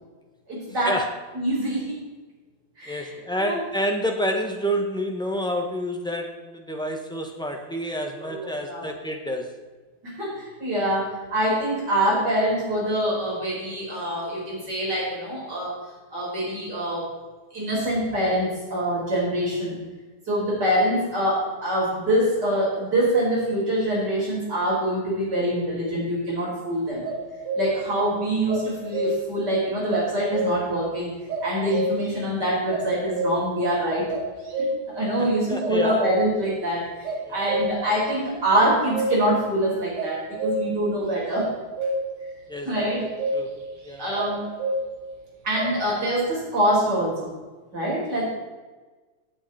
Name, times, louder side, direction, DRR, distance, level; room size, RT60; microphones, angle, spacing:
voice 1, 0.5-1.0 1.3-1.9 2.8-3.6 8.2-8.9 10.0-15.8 16.1-17.1 17.5-19.8 20.3-27.0 27.6-31.1 31.4-34.1 34.9-41.5 42.6-43.0 44.0-44.5 45.4-47.3 47.7-48.3, right 1 dB, 50° right, -5 dB, 5.7 m, -25 dB
voice 2, 2.9-9.5 27.7-27.8 35.2-36.1 37.2-37.5 42.5-43.5 43.8-44.2, equal, 5° left, 2 dB, 1.0 m, -29 dB
sound 1, 27.0-28.0 28.5-29.4 29.9-30.8 31.3-32.2 32.7-33.6 34.1-35.0 35.6-36.5 37.0-38.1 38.5-39.4 40.0-40.9 41.3-42.3 42.7-43.7 44.2-45.1 45.6-45.8, right 1 dB, 85° right, 3.4 m, -28 dB
17.5 x 8.7 x 4.4 m, 1.3 s
omnidirectional pair, 2.4 m